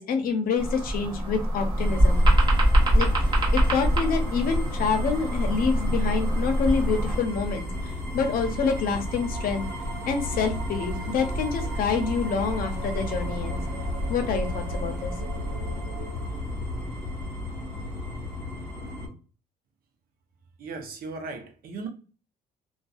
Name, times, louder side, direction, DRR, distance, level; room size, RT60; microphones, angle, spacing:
voice 1, 0.0-2.3 2.9-3.3 3.5-9.7 10.1-13.6 14.1-15.1, left 5 dB, 60° left, 0.7 m, -27 dB
sound 1, 0.6-7.2, equal, 30° right, 1.1 m, -23 dB
sound 2, 1.8-19.1, left 1 dB, 10° left, 1.4 m, -33 dB
sound 3, 8.5-16.6, right 7 dB, 90° right, 0.4 m, -43 dB
voice 2, 20.6-21.9, right 4 dB, 60° right, 0.7 m, -37 dB
2.5 x 2.2 x 2.4 m
cardioid pair, 110°, 17 cm